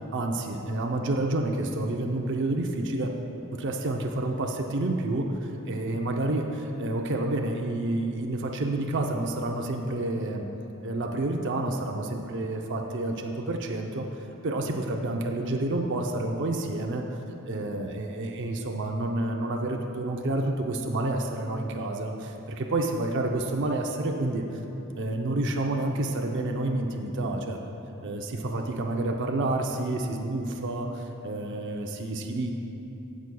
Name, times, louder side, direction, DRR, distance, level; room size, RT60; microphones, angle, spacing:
voice 1, 0.1-3.1 3.5-10.4 10.8-14.0 14.4-17.2 17.5-24.4 25.0-27.6 28.0-32.5, right 2 dB, 55° right, 2 dB, 0.6 m, -29 dB
17.5 x 6.2 x 2.3 m, 3.0 s
head